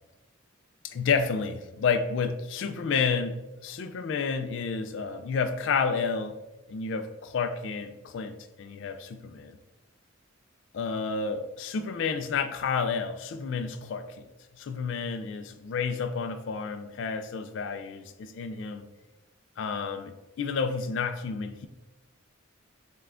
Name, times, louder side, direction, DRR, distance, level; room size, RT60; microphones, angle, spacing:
voice 1, 0.8-6.4 6.7-9.6 10.7-14.3 14.6-18.9 19.6-21.7, left 5 dB, 60° left, 0.3 m, -30 dB
5.5 x 2.2 x 3.6 m
head